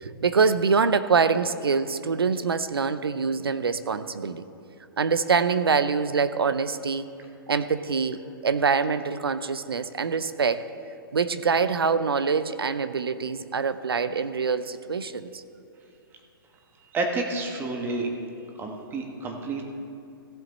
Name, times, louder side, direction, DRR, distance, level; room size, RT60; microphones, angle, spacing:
voice 1, 0.0-4.4 5.0-7.1 7.5-10.7 11.1-15.4, right 5 dB, 85° right, 13 dB, 0.6 m, -25 dB
voice 2, 16.8-18.1 18.6-19.6, right 3 dB, 15° right, 3 dB, 1.3 m, -30 dB
16.0 x 7.5 x 4.1 m, 2.7 s
hypercardioid pair, 125°, 12 cm